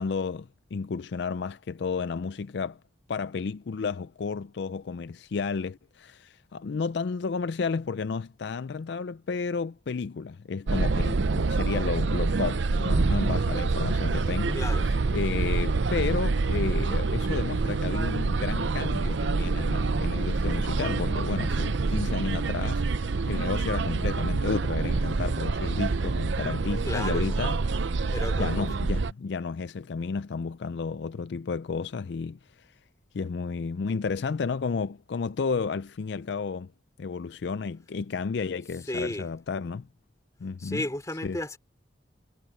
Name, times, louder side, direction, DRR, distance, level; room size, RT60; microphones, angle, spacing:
voice 1, 0.0-2.8 3.1-27.6 28.4-32.7 33.1-36.7 37.0-39.9 40.4-40.8 41.2-41.4, left 5 dB, 60° left, 0.4 m, -32 dB
sound 1, 10.7-29.1, right 3 dB, 70° right, 0.6 m, -26 dB
voice 2, 14.5-14.8 26.8-27.4 28.1-28.7 38.9-39.3 40.6-41.6, left 1 dB, 15° left, 2.8 m, -33 dB
head